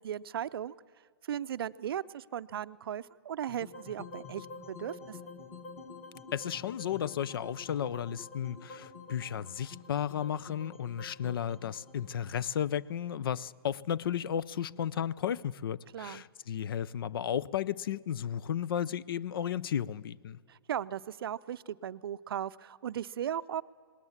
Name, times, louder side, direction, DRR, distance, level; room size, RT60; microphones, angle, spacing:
voice 1, 0.0-0.7 1.3-5.2 15.9-16.2 20.5-23.6, right 10 dB, 70° right, 0.5 m, -37 dB
sound 1, 3.5-13.7, left 4 dB, 15° left, 1.6 m, -49 dB
voice 2, 6.3-20.4, left 9 dB, 65° left, 0.5 m, -34 dB
19.0 x 19.0 x 7.2 m
hypercardioid pair, 160°, 13 cm